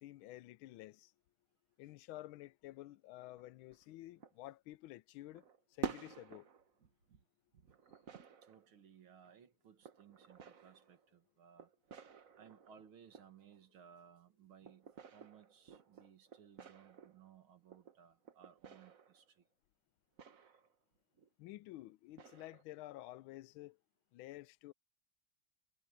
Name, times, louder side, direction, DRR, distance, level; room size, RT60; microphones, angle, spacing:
voice 1, 0.0-1.1 1.8-5.4 5.7-6.5 21.4-23.8 24.1-24.7, left 16 dB, 85° left, 1.4 m, -51 dB
sound 1, 3.4-3.9 4.2-4.8 5.3-7.2 7.5-8.8 9.8-11.1 11.6-13.6 14.6-17.3 17.7-19.3 20.2-20.7 21.2-21.3 22.1-22.6, right 6 dB, 45° right, 1.5 m, -50 dB
voice 2, 8.4-11.7 12.4-19.4, right 8 dB, 85° right, 2.5 m, -62 dB
omnidirectional pair, 2.2 m